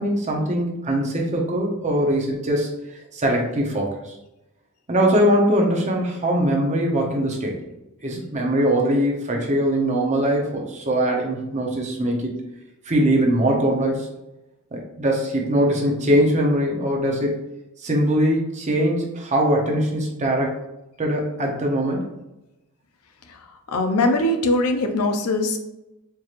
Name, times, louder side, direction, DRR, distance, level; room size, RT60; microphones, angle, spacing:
voice 1, 0.0-2.8 3.1-4.1 4.9-7.6 8.0-12.4 12.9-14.1 14.7-17.4 17.8-20.5 21.0-22.0, right 1 dB, 30° right, 0 dB, 0.7 m, -21 dB
voice 2, 23.3-25.6, left 2 dB, 85° left, 5 dB, 0.5 m, -22 dB
4.5 x 3.0 x 2.5 m, 0.94 s
head